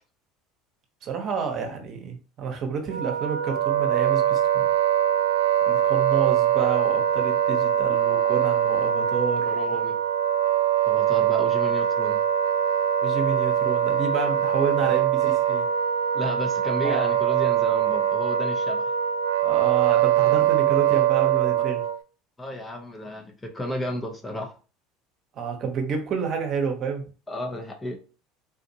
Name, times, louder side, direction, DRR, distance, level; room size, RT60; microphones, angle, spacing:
voice 1, 1.0-4.7 5.7-9.6 13.0-15.7 16.8-17.1 19.4-21.8 25.3-27.0, right 6 dB, 50° right, 4 dB, 0.9 m, -29 dB
Wind instrument woodwind instrument, 2.9-22.0, right 10 dB, 85° right, 0.3 m, -23 dB
voice 2, 9.5-9.9 10.9-12.2 16.1-19.0 22.4-24.5 27.3-28.0, left 1 dB, 15° left, 3 dB, 0.8 m, -32 dB
3.7 x 2.4 x 2.8 m, 0.34 s
supercardioid pair, 90°, 0 cm